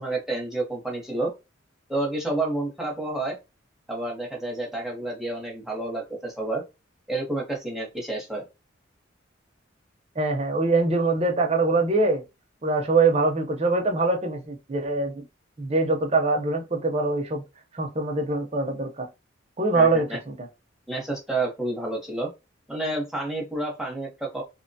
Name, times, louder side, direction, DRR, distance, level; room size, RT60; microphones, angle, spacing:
voice 1, 0.0-1.3 1.9-3.4 3.9-6.6 7.1-8.4 19.7-20.2 20.9-22.3 22.7-24.4, right 2 dB, ahead, 0.8 m, -29 dB
voice 2, 10.2-12.2 12.6-15.2 15.6-17.4 17.7-19.1 19.6-20.5, right 3 dB, 30° right, 0.6 m, -23 dB
2.9 x 2.1 x 2.6 m
head